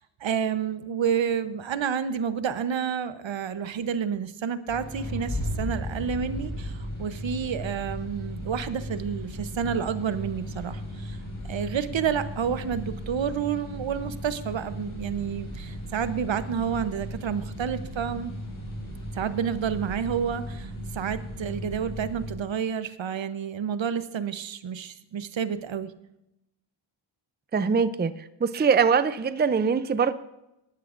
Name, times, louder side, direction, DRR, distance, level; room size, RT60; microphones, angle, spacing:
voice 1, 0.0-11.2 11.5-18.3 19.1-25.9, right 7 dB, 65° right, 12 dB, 0.9 m, -29 dB
sound 1, 4.7-22.3, equal, 40° left, 4.5 m, -36 dB
voice 2, 27.5-28.1 28.4-30.1, right 6 dB, 20° right, 13 dB, 0.5 m, -22 dB
19.0 x 11.5 x 2.6 m, 0.88 s
cardioid pair, 70°, 48 cm